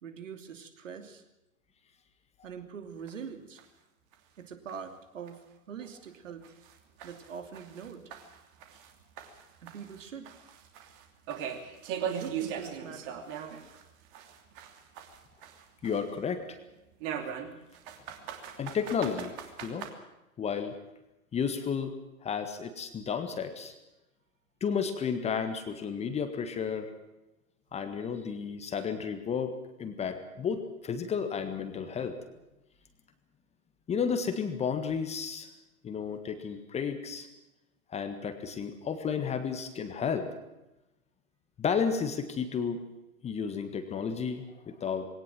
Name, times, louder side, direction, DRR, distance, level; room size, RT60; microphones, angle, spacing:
voice 1, 0.0-1.2 2.4-3.6 4.4-6.4 7.0-8.0 9.6-10.3 12.0-13.2, right 7 dB, 60° right, 7 dB, 2.9 m, -43 dB
sound 1, 3.1-3.2 3.6-3.7 4.1-4.2 4.7-4.8 5.3-5.4 5.8-5.9 6.4-8.9 9.2-13.8 14.1-16.2 17.0-19.9, right 8 dB, 35° right, 3.0 m, -39 dB
voice 2, 15.8-16.6 18.6-19.3 19.6-19.9 20.4-20.7 21.3-21.9 22.2-23.7 24.6-26.9 27.7-32.2 33.9-35.5 35.8-37.3 37.9-40.3 41.6-42.8 43.2-45.1, left 6 dB, 15° left, 8 dB, 1.6 m, -32 dB
21.5 x 18.0 x 7.7 m, 0.94 s
figure-of-eight pair, 110°, 43 cm